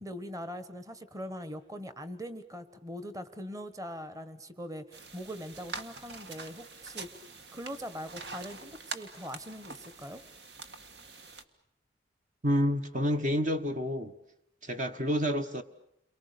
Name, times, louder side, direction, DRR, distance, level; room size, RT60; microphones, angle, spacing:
voice 1, 0.0-10.2, equal, 20° right, 12 dB, 1.4 m, -42 dB
sound 1, 4.9-11.4, right 3 dB, 75° right, 1.8 m, -45 dB
voice 2, 12.4-14.1 14.6-15.6, equal, 45° right, 7 dB, 1.2 m, -29 dB
30.0 x 23.5 x 6.9 m, 0.75 s
head